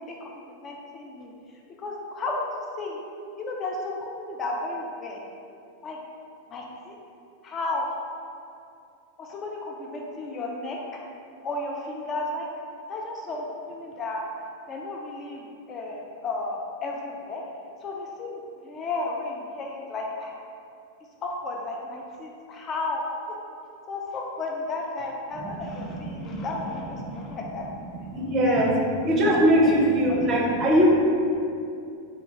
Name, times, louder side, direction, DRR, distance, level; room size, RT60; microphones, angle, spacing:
voice 1, 0.0-1.3 1.8-3.0 3.4-5.2 5.8-6.0 6.5-7.0 7.4-7.9 9.2-11.0 11.4-12.5 12.9-14.2 14.7-17.4 17.8-20.4 21.2-23.0 23.3-23.4 23.9-27.7 28.4-28.9 29.2-30.6, left 2 dB, 25° left, 0 dB, 0.3 m, -33 dB
voice 2, 25.8-26.4 27.3-27.4 28.1-28.7 29.0-30.9, equal, 30° right, -1 dB, 0.5 m, -21 dB
3.4 x 2.2 x 2.8 m, 2.5 s
figure-of-eight pair, 90°, 0 cm